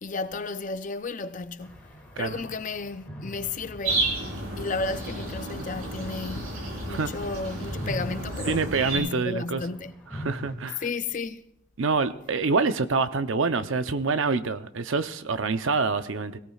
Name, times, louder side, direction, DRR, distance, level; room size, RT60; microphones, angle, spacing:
voice 1, 0.0-1.9 2.2-4.1 4.6-10.1 10.8-11.4, left 3 dB, 35° left, 0.5 m, -33 dB
sound 1, 1.6-7.2 7.6-10.5, equal, 5° left, 2.4 m, -42 dB
sound 2, 3.8-9.0, right 2 dB, 80° right, 4.2 m, -31 dB
voice 2, 8.5-9.6 10.2-10.8 11.8-16.4, right 4 dB, 65° right, 0.7 m, -26 dB
22.0 x 17.0 x 2.4 m
head